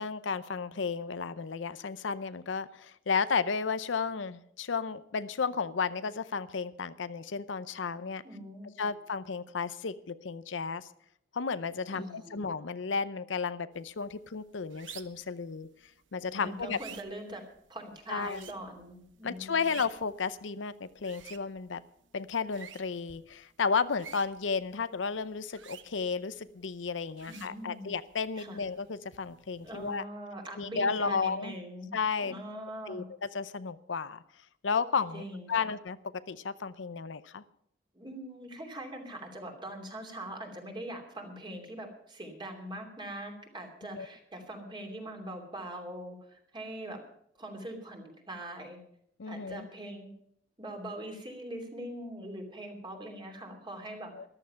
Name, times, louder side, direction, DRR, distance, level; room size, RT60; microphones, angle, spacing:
voice 1, 0.0-8.2 8.8-10.9 11.3-15.7 16.1-16.8 18.1-18.4 19.2-21.8 22.1-30.0 30.6-31.6 31.9-32.3 32.9-33.0 33.3-34.2 34.6-36.0 36.3-37.4 43.9-44.1 49.2-49.7 54.1-54.2, left 5 dB, 85° left, 14 dB, 0.7 m, -33 dB
voice 2, 8.2-8.9 11.9-12.4 16.4-19.6 27.3-27.9 28.4-28.6 29.6-31.9 32.2-33.1 35.1-35.7 37.9-47.0 47.4-48.8 49.3-50.1 50.6-54.1, right 1 dB, 25° right, 3 dB, 2.8 m, -42 dB
sound 1, 13.7-30.0, right 9 dB, 85° right, 0.9 m, -54 dB
14.0 x 12.0 x 5.7 m, 0.70 s
head